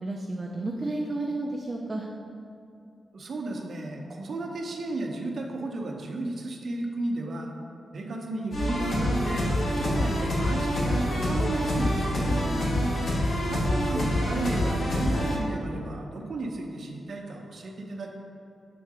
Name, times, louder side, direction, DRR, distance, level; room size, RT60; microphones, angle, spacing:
voice 1, 0.0-2.1 12.2-12.8, right 2 dB, 25° right, -1 dB, 0.5 m, -32 dB
voice 2, 3.1-7.5 7.9-9.5 9.8-12.2 13.5-18.1, right 2 dB, 55° right, 1 dB, 0.8 m, -34 dB
sound 1, 8.5-15.4, equal, 55° left, 1.3 m, -26 dB
6.9 x 3.7 x 4.8 m, 2.6 s
wide cardioid pair, 115°, 0 cm